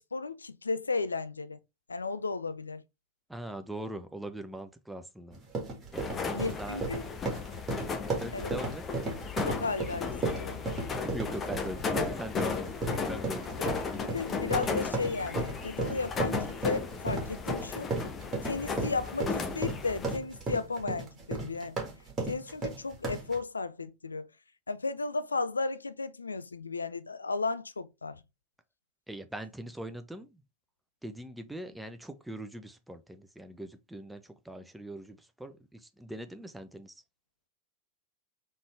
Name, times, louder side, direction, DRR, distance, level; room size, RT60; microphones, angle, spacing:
voice 1, 0.0-1.6 1.9-2.8 6.3-7.0 8.3-8.5 9.5-10.6 13.7-13.8 14.0-17.9 18.4-21.8 22.3-24.3 24.7-28.2, left 4 dB, 75° left, 0.3 m, -34 dB
voice 2, 3.3-5.4 5.9-6.9 8.2-8.8 10.9-13.5 29.1-30.4 31.0-36.9, right 1 dB, 5° right, 0.6 m, -41 dB
sound 1, 5.3-23.4, right 3 dB, 25° right, 1.9 m, -35 dB
sound 2, 5.9-20.2, left 4 dB, 20° left, 0.8 m, -35 dB
3.9 x 3.6 x 3.4 m
figure-of-eight pair, 90°, 0 cm